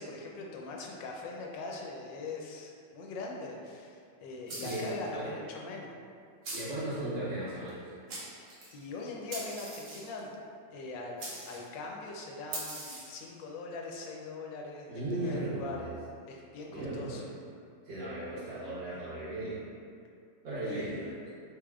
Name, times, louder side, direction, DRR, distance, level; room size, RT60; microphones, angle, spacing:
voice 1, 0.0-6.0 8.7-10.3 10.7-15.8 16.3-17.2 20.6-21.2, left 3 dB, 85° left, -1 dB, 1.3 m, -41 dB
sound 1, 4.5-5.0 6.4-6.8 7.7-7.8 8.1-8.7 9.3-10.2 11.2-11.7 12.5-13.2, right 2 dB, 55° right, 1.0 m, -41 dB
voice 2, 4.6-5.3 6.5-7.8 14.9-15.9 16.7-17.3 17.9-19.6 20.4-21.1, right 1 dB, 85° right, -11 dB, 1.8 m, -36 dB
3.7 x 3.4 x 2.3 m, 2.3 s
omnidirectional pair, 1.9 m